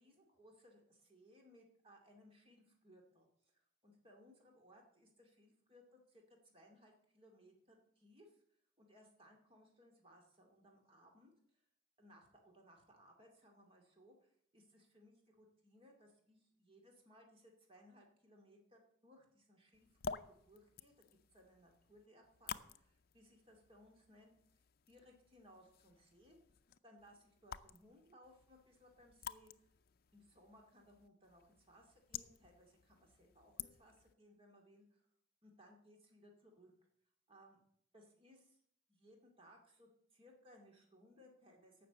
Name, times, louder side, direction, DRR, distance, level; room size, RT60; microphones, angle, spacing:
voice 1, 0.0-8.3 8.8-11.6 12.0-20.2 20.5-20.9 21.3-24.3 24.9-26.4 26.8-29.5 30.1-35.0 35.4-36.7 37.3-37.6 37.9-38.6 38.9-41.9, equal, 30° right, 1 dB, 2.4 m, -65 dB
sound 1, 19.7-34.1, left 6 dB, 55° left, 0.6 m, -52 dB
14.5 x 6.0 x 8.1 m, 0.69 s
head